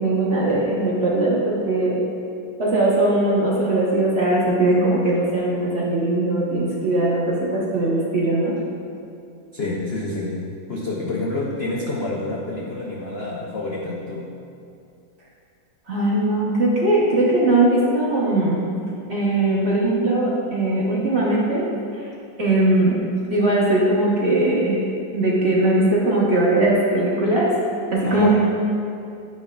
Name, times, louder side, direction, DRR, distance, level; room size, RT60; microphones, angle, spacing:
voice 1, 0.0-2.0 2.6-8.6 15.9-18.7 19.1-21.7 22.0-22.1 22.4-24.8 25.1-27.5 27.9-28.3, right 2 dB, 40° right, -6 dB, 1.1 m, -20 dB
voice 2, 9.5-10.4 10.7-14.3 28.0-28.3, left 2 dB, 75° left, -4 dB, 0.5 m, -28 dB
9.6 x 5.3 x 2.3 m, 2.5 s
omnidirectional pair, 2.0 m